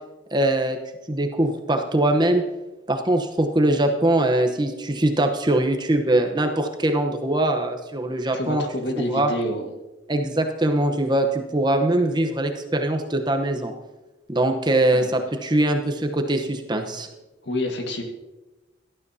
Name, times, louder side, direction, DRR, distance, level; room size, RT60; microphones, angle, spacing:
voice 1, 0.3-0.8 1.1-2.4 2.9-8.6 9.0-9.3 10.1-13.7 14.3-17.1, right 1 dB, 25° right, 5 dB, 0.9 m, -22 dB
voice 2, 8.3-9.8 14.9-15.1 17.4-18.0, left 1 dB, 70° left, 4 dB, 1.6 m, -28 dB
17.5 x 12.0 x 2.8 m, 1.1 s
head